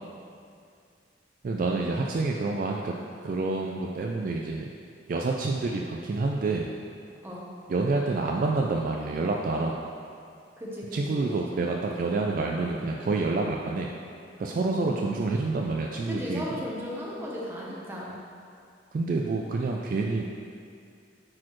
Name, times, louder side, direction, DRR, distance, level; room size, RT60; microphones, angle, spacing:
voice 1, 1.4-2.9 3.2-4.7 5.1-6.7 7.7-9.8 10.9-13.9 14.4-16.4 18.9-20.2, right 3 dB, 45° right, 0 dB, 0.3 m, -28 dB
voice 2, 10.6-11.7 12.2-12.4 14.5-15.2 16.1-18.2, left 1 dB, 10° right, -5 dB, 0.9 m, -36 dB
8.7 x 4.2 x 3.1 m, 2.4 s
head